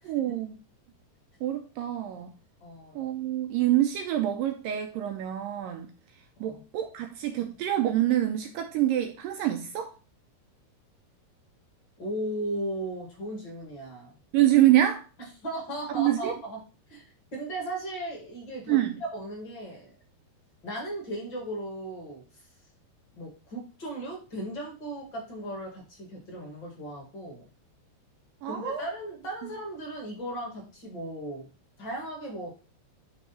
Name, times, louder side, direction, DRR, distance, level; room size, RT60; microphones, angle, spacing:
voice 1, 0.0-0.6 1.4-2.3 3.0-5.9 6.4-9.9 14.3-15.0 16.0-16.4 18.7-19.0 28.4-28.9 29.4-29.5, right 13 dB, 80° right, 2.0 m, -26 dB
voice 2, 2.6-3.0 6.4-6.6 12.0-14.1 15.4-16.6 16.9-17.0 17.3-18.8 19.1-19.9 20.6-22.2 23.2-27.4 28.4-31.5 31.8-32.5, right 1 dB, 35° left, 2.2 m, -36 dB
9.3 x 3.5 x 4.2 m
omnidirectional pair, 4.4 m